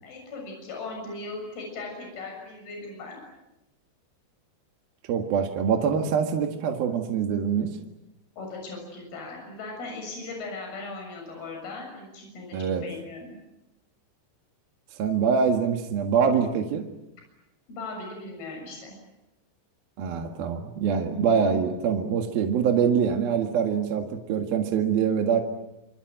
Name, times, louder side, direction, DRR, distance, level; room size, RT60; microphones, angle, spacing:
voice 1, 0.0-3.2 8.4-13.3 17.7-19.0, left 3 dB, 55° left, 1 dB, 8.8 m, -38 dB
voice 2, 5.1-7.7 12.5-12.8 15.0-16.8 20.0-25.4, right 7 dB, 60° right, 3 dB, 3.3 m, -24 dB
27.5 x 26.5 x 7.8 m, 0.93 s
omnidirectional pair, 5.5 m